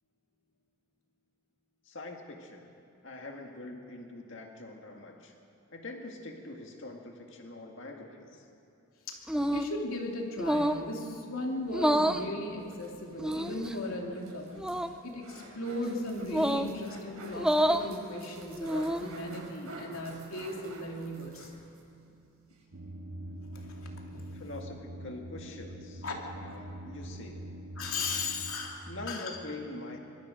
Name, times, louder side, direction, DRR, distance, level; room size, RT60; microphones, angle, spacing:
voice 1, 1.9-2.7 3.0-5.3 5.7-8.4 24.3-26.0 26.4-27.4 28.9-30.0, left 2 dB, 60° left, 2 dB, 2.0 m, -44 dB
voice 2, 9.1-14.6 15.0-21.5 23.5-24.3 26.0-26.2 27.8-29.4, left 2 dB, 80° left, 0 dB, 3.0 m, -37 dB
sound 1, 9.3-9.8 10.4-10.9 11.7-12.3 13.2-13.7 14.6-14.9 16.3-16.7 17.3-17.9 18.6-19.1, equal, 5° right, 0.5 m, -28 dB
sound 2, 12.5-21.9 22.2-22.3 22.5-22.6, right 2 dB, 90° right, 5.9 m, -50 dB
sound 3, 22.7-28.5, right 1 dB, 50° right, 1.3 m, -44 dB
24.5 x 23.5 x 5.1 m, 2.7 s
head